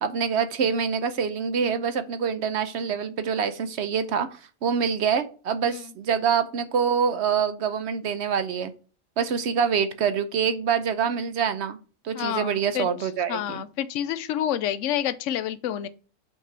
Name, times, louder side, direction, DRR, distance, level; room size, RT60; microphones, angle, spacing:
voice 1, 0.0-4.3 4.6-8.7 9.2-11.8 12.0-13.6, right 7 dB, 60° right, 0.9 m, -25 dB
voice 2, 12.1-15.9, left 11 dB, 75° left, 0.9 m, -29 dB
5.5 x 4.7 x 4.4 m
omnidirectional pair, 1.3 m